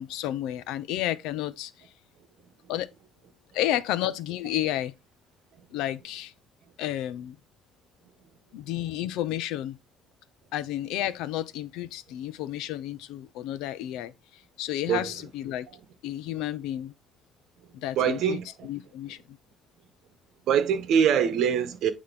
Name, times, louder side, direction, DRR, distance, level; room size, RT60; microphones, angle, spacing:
voice 1, 0.0-1.7 2.7-2.9 3.5-4.9 5.7-6.3 6.8-7.4 8.5-9.8 10.5-15.7 16.0-16.9 17.7-19.4, left 12 dB, 85° left, 0.6 m, -31 dB
voice 2, 17.9-18.4 20.5-21.9, right 8 dB, 60° right, 1.2 m, -23 dB
8.6 x 3.0 x 4.1 m
cardioid pair, 155°, 0 cm